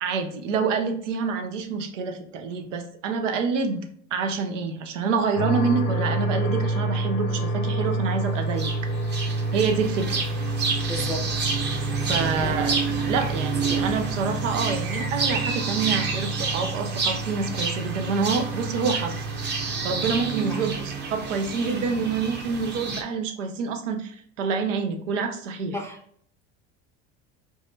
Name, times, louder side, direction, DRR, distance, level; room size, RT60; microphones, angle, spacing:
voice 1, 0.0-3.9 4.1-8.7 9.5-10.2 12.1-12.8 13.0-19.5 19.8-25.8, right 5 dB, 90° right, 6 dB, 0.7 m, -27 dB
sound 1, 5.4-20.2, right 2 dB, 75° left, 0.8 m, -29 dB
sound 2, 8.5-23.0, right 4 dB, 30° right, 0.8 m, -29 dB
voice 2, 10.9-11.2 12.4-12.6 13.7-13.9 20.5-20.7 25.7-26.0, left 1 dB, 5° left, 0 dB, 0.5 m, -33 dB
4.7 x 2.2 x 2.7 m, 0.63 s
hypercardioid pair, 85°, 36 cm